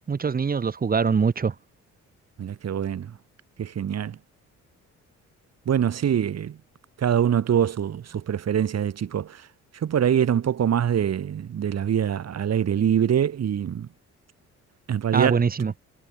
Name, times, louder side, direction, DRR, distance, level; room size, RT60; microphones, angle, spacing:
voice 1, 0.0-1.5 15.1-15.7, right 5 dB, 30° right, 1.1 m, -23 dB
voice 2, 2.4-3.2 3.6-4.2 5.7-6.6 7.0-9.5 9.7-13.9 14.9-15.4, right 9 dB, 60° right, 4.0 m, -24 dB
cardioid pair, 90°, 30 cm